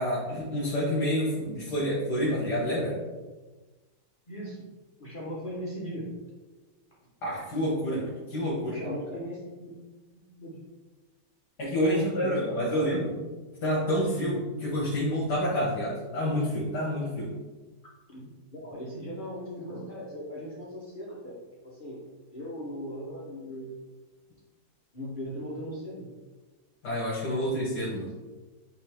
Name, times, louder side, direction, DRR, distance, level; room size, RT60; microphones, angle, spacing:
voice 1, 0.0-3.0 7.2-8.8 11.6-13.1 13.6-17.3 26.8-28.1, equal, 70° left, -7 dB, 2.1 m, -28 dB
voice 2, 4.3-4.6 5.0-6.1 8.7-9.7 10.1-10.6 11.9-12.9 18.1-21.3 21.6-22.0 22.3-23.8 24.9-26.1, equal, 35° left, -7 dB, 1.2 m, -38 dB
8.1 x 3.4 x 3.5 m, 1.2 s
omnidirectional pair, 1.8 m